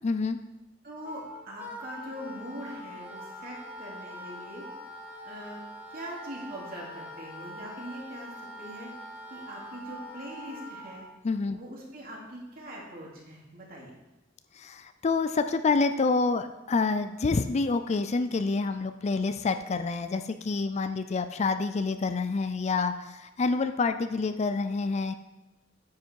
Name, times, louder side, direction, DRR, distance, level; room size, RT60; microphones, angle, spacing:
voice 1, 0.0-0.4 11.2-11.6 14.6-25.1, left 4 dB, 35° left, 10 dB, 0.4 m, -27 dB
voice 2, 0.8-4.6 5.2-5.6 5.9-8.3 8.6-8.9 9.3-11.1 11.5-13.9, equal, 50° right, -3 dB, 2.8 m, -42 dB
Wind instrument woodwind instrument, 1.0-11.0, equal, 10° right, 1.5 m, -44 dB
9.6 x 8.1 x 4.6 m, 1.0 s
head